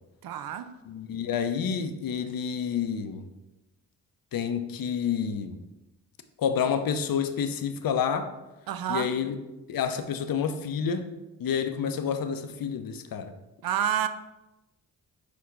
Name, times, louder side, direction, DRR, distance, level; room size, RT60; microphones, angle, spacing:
voice 1, 0.2-0.8 8.7-9.2 13.6-14.1, right 9 dB, 55° right, 0.5 m, -29 dB
voice 2, 0.9-3.3 4.3-5.6 6.4-8.3 8.9-9.4 9.7-11.1 11.4-13.3, left 7 dB, 50° left, 0.6 m, -29 dB
5.8 x 2.2 x 3.7 m
supercardioid pair, 40°, 43 cm